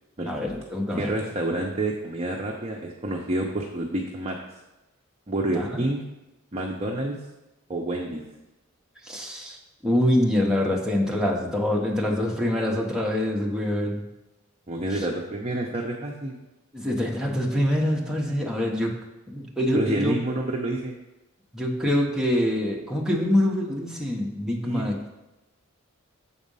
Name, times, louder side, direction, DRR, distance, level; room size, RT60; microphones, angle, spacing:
voice 1, 0.3-1.1 5.5-5.8 9.0-9.6 9.8-14.0 16.7-19.0 19.3-20.1 21.5-25.0, left 1 dB, 5° right, -1 dB, 0.9 m, -25 dB
voice 2, 1.0-4.4 5.3-6.0 6.5-7.2 7.7-8.2 14.7-16.4 19.7-20.9 24.6-24.9, right 1 dB, 30° right, -1 dB, 0.6 m, -28 dB
7.3 x 4.2 x 5.4 m, 1.0 s
head